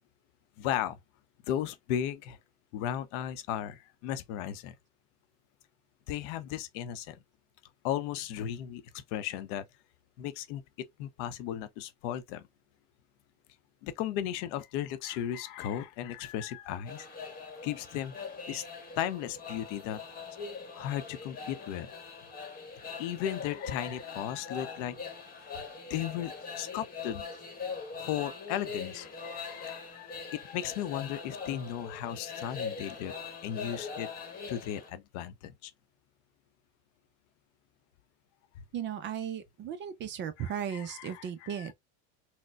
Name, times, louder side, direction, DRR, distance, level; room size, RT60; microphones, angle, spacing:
voice 1, 0.6-1.0 1.5-2.4 2.7-4.7 6.1-7.2 7.8-9.6 10.2-10.6 11.0-12.5 13.8-17.1 17.6-18.1 18.5-18.6 19.0-20.0 20.7-21.9 23.0-25.0 25.9-27.3 28.0-33.1 33.4-34.1 34.5-35.7 40.4-41.7, left 10 dB, 65° left, 0.7 m, -35 dB
sound 1, 16.9-34.9, left 5 dB, 25° left, 1.0 m, -42 dB
voice 2, 38.7-41.7, right 9 dB, 30° right, 0.4 m, -36 dB
4.1 x 2.1 x 2.2 m
supercardioid pair, 125°, 38 cm